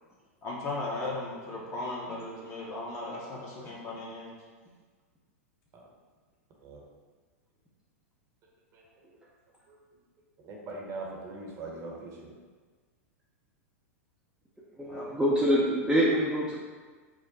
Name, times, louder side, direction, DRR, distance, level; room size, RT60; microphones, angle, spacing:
voice 1, 0.4-4.4 14.8-15.1, left 2 dB, 35° left, -4 dB, 1.1 m, -37 dB
voice 2, 3.2-3.7 5.7-5.8 6.6-6.8 8.7-9.1 9.7-9.8 10.4-12.3, right 3 dB, 35° right, -2 dB, 1.0 m, -42 dB
voice 3, 14.8-16.6, equal, 5° right, -8 dB, 0.7 m, -25 dB
5.0 x 2.1 x 4.0 m, 1.4 s
hypercardioid pair, 100°, 8 cm